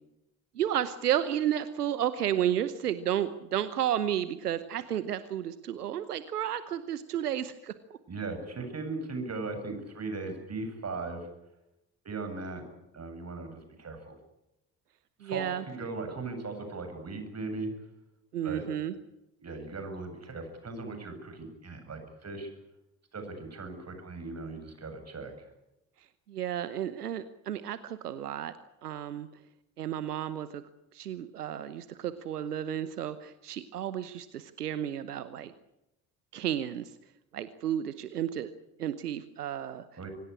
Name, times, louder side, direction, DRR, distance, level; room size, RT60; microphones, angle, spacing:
voice 1, 0.5-7.7 15.2-15.6 18.3-18.9 26.3-28.5 28.8-29.3 29.8-30.6 30.9-35.5 36.3-36.9 37.3-38.5 38.8-39.8, right 10 dB, 85° right, 14 dB, 1.0 m, -32 dB
voice 2, 8.1-11.3 12.0-12.6 12.9-14.1 15.2-17.7 18.4-18.6 19.4-22.5 23.1-25.3 40.0-40.1, right 3 dB, 35° right, 7 dB, 7.7 m, -38 dB
25.5 x 17.5 x 9.9 m, 0.90 s
figure-of-eight pair, 50°, 45 cm